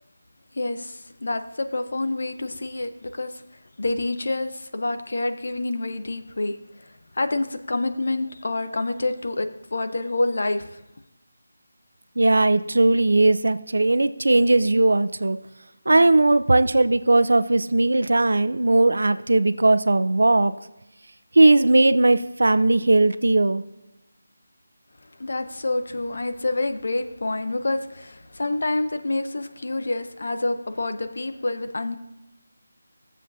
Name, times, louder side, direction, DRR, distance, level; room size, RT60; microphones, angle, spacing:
voice 1, 0.5-3.4 3.8-6.9 7.1-10.8 25.2-32.0, left 2 dB, 55° left, 8 dB, 0.7 m, -27 dB
voice 2, 12.2-15.4 15.9-20.5 21.4-23.6, right 2 dB, 80° right, 13 dB, 0.5 m, -18 dB
16.0 x 7.2 x 2.7 m, 0.93 s
figure-of-eight pair, 180°, 0 cm